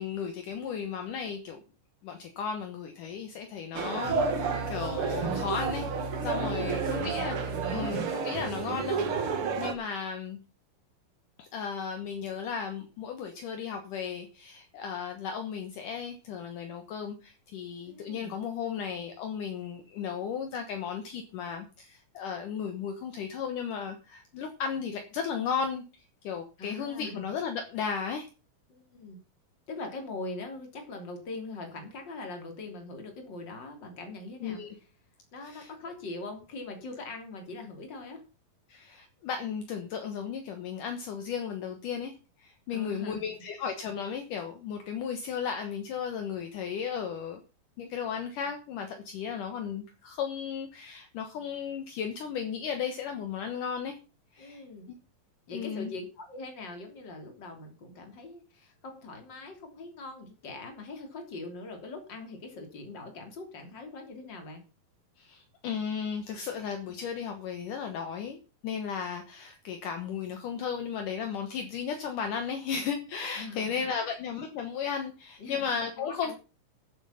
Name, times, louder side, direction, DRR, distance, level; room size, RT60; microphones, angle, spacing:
voice 1, 0.0-1.6 2.0-5.9 6.2-7.5 7.7-10.4 11.4-25.8 26.2-28.3 34.4-34.8 35.4-35.7 38.7-47.4 47.8-54.0 54.3-54.6 55.5-55.9 65.2-68.4 68.6-76.3, left 7 dB, 65° left, 5 dB, 2.7 m, -35 dB
sound 1, 3.7-9.7, right 5 dB, 50° right, 1.9 m, -30 dB
voice 2, 6.2-7.4 17.9-18.4 26.6-27.3 28.7-29.2 29.7-34.6 35.3-38.2 42.7-43.3 54.4-54.9 55.5-64.6 73.4-74.2 75.4-75.7 76.0-76.3, left 3 dB, 30° left, 4 dB, 3.5 m, -42 dB
14.0 x 7.7 x 5.7 m, 0.34 s
omnidirectional pair, 4.2 m